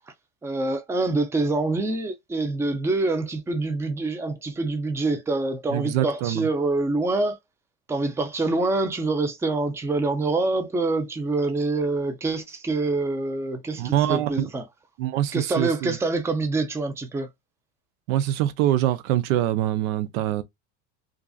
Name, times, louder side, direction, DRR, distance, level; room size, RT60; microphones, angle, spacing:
voice 1, 0.4-7.4 7.9-14.6 15.3-17.3, right 2 dB, 5° right, 0.4 m, -26 dB
voice 2, 5.7-6.5 13.8-14.5 15.0-16.0 18.1-20.4, right 12 dB, 85° right, 0.5 m, -24 dB
2.4 x 2.3 x 2.2 m
supercardioid pair, 100°, 39 cm